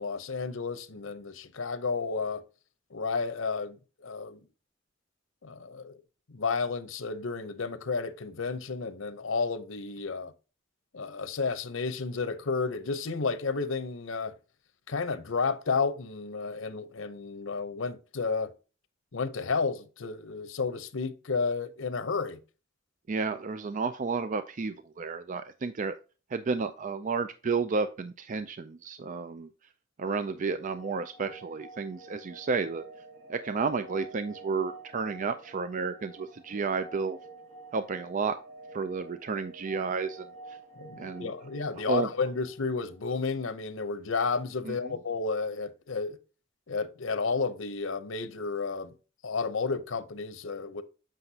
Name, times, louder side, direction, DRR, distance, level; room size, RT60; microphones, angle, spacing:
voice 1, 0.0-2.4 2.9-4.4 5.4-6.0 6.3-10.3 10.9-14.3 14.9-18.5 19.1-22.4 40.8-46.2 46.7-48.9 49.2-50.8, left 4 dB, 90° left, 0.8 m, -32 dB
voice 2, 23.1-26.0 26.3-29.5 30.0-32.8 33.3-37.2 37.7-38.4 38.7-40.6 41.0-41.3 41.9-42.1 44.6-44.9, right 4 dB, 40° right, 0.4 m, -32 dB
sound 1, 30.4-43.2, right 3 dB, 80° right, 2.1 m, -49 dB
7.8 x 5.9 x 2.8 m
head